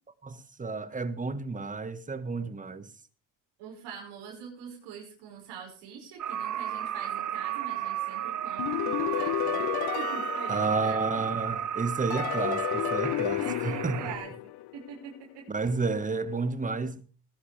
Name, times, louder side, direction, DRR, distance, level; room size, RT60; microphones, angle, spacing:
voice 1, 0.2-2.9 10.5-14.1 15.5-17.0, right 4 dB, 20° right, 1.5 m, -31 dB
voice 2, 3.6-11.1 13.1-15.7, right 6 dB, 90° right, 5.8 m, -44 dB
sound 1, 6.2-14.2, right 9 dB, 45° right, 1.0 m, -33 dB
sound 2, 8.6-11.4 12.1-14.9, left 16 dB, 70° left, 0.7 m, -32 dB
20.0 x 11.5 x 3.4 m
cardioid pair, 110°, 40 cm